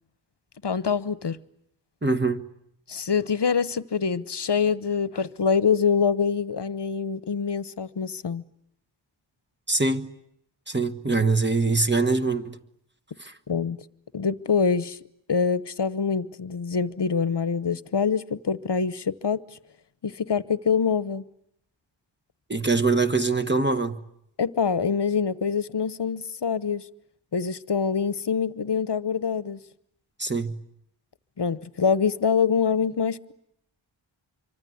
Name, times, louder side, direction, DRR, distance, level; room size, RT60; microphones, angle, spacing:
voice 1, 0.6-1.4 2.9-8.4 13.5-13.8 14.1-15.0 15.3-19.4 20.0-21.2 24.4-26.9 27.3-29.6 31.4-33.3, left 6 dB, 55° left, 1.0 m, -25 dB
voice 2, 2.0-2.4 9.7-10.1 10.7-12.6 13.2-13.3 22.5-24.0 30.2-30.5, right 3 dB, 20° right, 1.5 m, -23 dB
26.5 x 24.0 x 9.4 m
wide cardioid pair, 75°, 48 cm